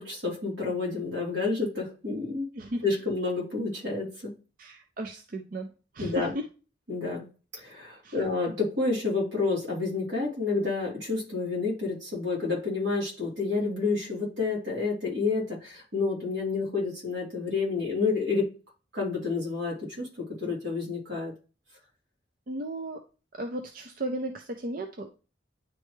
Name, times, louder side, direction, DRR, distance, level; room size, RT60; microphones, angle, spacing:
voice 1, 0.0-2.5 2.8-4.3 6.0-6.3 6.9-7.2 7.5-18.5 18.9-21.3, left 4 dB, 85° right, -2 dB, 3.1 m, -29 dB
voice 2, 4.6-5.7 5.9-6.4 8.0-8.2 22.5-23.0 23.3-25.1, right 1 dB, 50° right, 4 dB, 0.5 m, -35 dB
9.7 x 3.3 x 3.1 m, 0.34 s
head